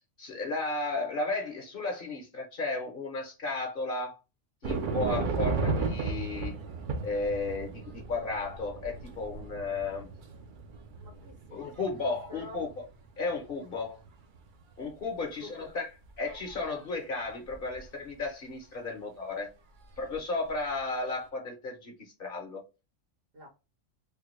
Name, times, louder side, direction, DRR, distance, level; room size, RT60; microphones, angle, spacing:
voice 1, 0.2-4.2 4.6-6.5 7.0-10.1 11.5-12.8 13.2-14.0 14.8-15.9 16.2-19.5 20.0-22.6, left 3 dB, 50° left, 0.9 m, -34 dB
sound 1, 4.6-13.3 13.7-14.4 14.9-15.0 16.0-16.7 17.5-17.9 19.9-20.2 20.5-20.7, right 4 dB, 55° right, 0.6 m, -35 dB
voice 2, 11.0-12.7 15.3-15.7 23.3-23.5, left 2 dB, 75° right, 1.9 m, -49 dB
3.5 x 2.2 x 3.1 m
omnidirectional pair, 1.3 m